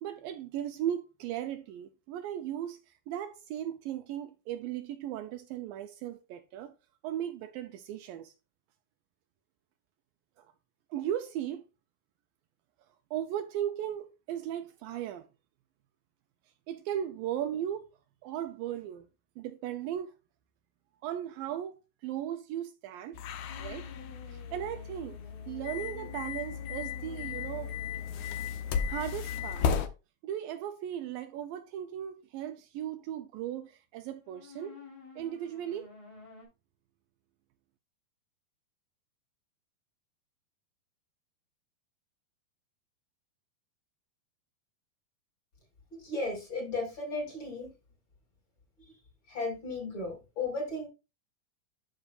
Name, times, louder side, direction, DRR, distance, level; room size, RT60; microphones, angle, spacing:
voice 1, 0.0-2.8 3.1-6.7 7.0-8.3 10.9-11.7 13.1-15.3 16.7-17.9 18.2-19.1 19.4-20.1 21.0-23.2 23.6-23.9 24.3-25.2 25.5-27.7 28.9-29.7 30.2-34.8 35.2-35.9, right 10 dB, 80° right, 2.2 m, -37 dB
sound 1, 23.1-29.9, left 7 dB, 80° left, 1.7 m, -35 dB
sound 2, 23.5-28.9 34.2-36.5, left 4 dB, 60° left, 5.2 m, -52 dB
voice 2, 45.9-47.7 49.3-50.9, left 3 dB, 35° left, 3.0 m, -35 dB
12.0 x 5.9 x 2.4 m
omnidirectional pair, 4.4 m